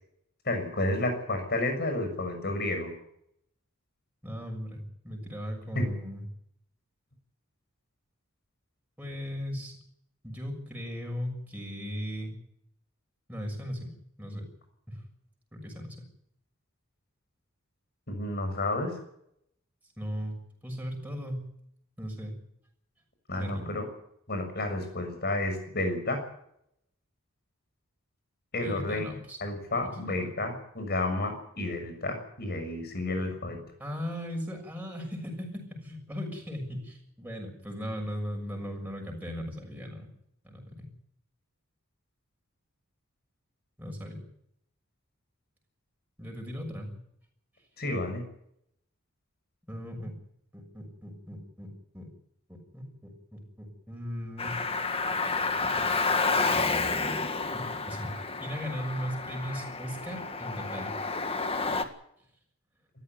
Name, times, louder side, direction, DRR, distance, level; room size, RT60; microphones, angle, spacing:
voice 1, 0.4-2.9 5.7-5.9 18.1-19.0 23.3-23.9 24.3-26.2 28.5-29.0 29.4-33.6 47.8-48.3, left 2 dB, 50° left, 6 dB, 6.6 m, -31 dB
voice 2, 4.2-6.2 9.0-9.7 10.2-12.3 13.3-13.9 14.2-14.4 14.9-15.0 15.5-16.0 20.0-21.5 22.0-22.4 23.4-23.7 28.6-29.4 29.8-30.4 33.8-40.1 40.4-40.9 43.8-44.2 46.2-46.9 49.7-50.1 50.5-52.1 52.7-54.5 57.5-61.0, equal, 10° right, 1 dB, 6.5 m, -37 dB
Car, 54.4-61.8, left 3 dB, 30° left, 1.7 m, -30 dB
20.0 x 14.5 x 9.6 m, 0.74 s
head